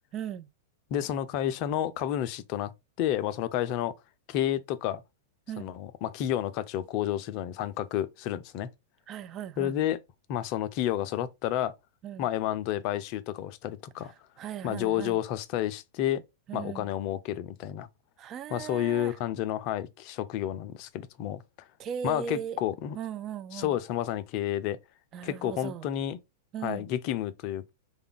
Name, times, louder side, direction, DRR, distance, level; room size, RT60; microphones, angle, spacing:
voice 1, 0.1-0.5 5.5-5.7 9.1-9.7 12.0-12.3 14.4-15.2 16.5-16.9 18.2-19.2 21.8-22.6 22.9-23.8 25.1-25.9 26.5-26.9, right 8 dB, 35° right, 0.3 m, -38 dB
voice 2, 0.9-2.7 3.0-3.9 4.3-5.0 5.6-8.7 9.6-10.0 10.3-11.7 12.2-14.1 14.6-16.2 16.5-17.9 18.5-21.7 22.0-23.0 23.5-24.8 25.2-26.2 26.6-27.7, left 12 dB, 45° left, 0.4 m, -30 dB
3.2 x 2.3 x 3.7 m
figure-of-eight pair, 100°, 0 cm